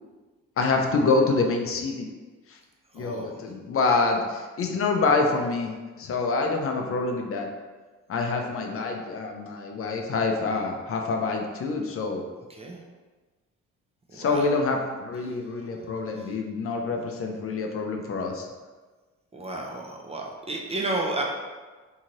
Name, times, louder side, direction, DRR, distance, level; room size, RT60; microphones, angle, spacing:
voice 1, 0.6-2.1 2.5-2.6 2.9-5.7 6.0-7.5 8.1-12.2 14.1-18.5, left 3 dB, 50° left, 3 dB, 0.5 m, -26 dB
voice 2, 2.9-3.4 12.5-12.8 14.1-14.5 16.2-16.3 19.3-21.2, right 2 dB, 20° right, -1 dB, 0.4 m, -32 dB
2.7 x 2.4 x 3.0 m, 1.3 s
cardioid pair, 90°, 30 cm